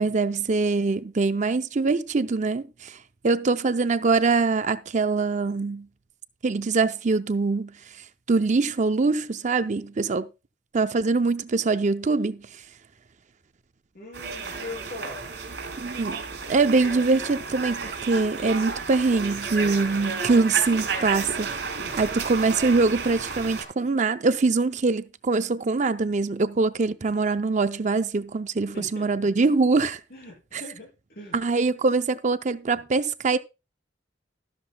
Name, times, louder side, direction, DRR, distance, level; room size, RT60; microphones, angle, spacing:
voice 1, 0.0-3.0 3.2-5.9 6.4-7.7 8.3-10.3 10.7-12.4 15.8-16.2 16.5-21.5 21.9-30.0 31.3-33.4, right 3 dB, 40° right, 0.5 m, -23 dB
voice 2, 13.9-15.3 21.8-22.1 28.7-29.3 30.1-31.4 32.7-32.8, left 2 dB, 55° left, 6.3 m, -42 dB
sound 1, 14.1-23.6, right 4 dB, 65° right, 4.3 m, -32 dB
13.0 x 12.5 x 2.2 m
head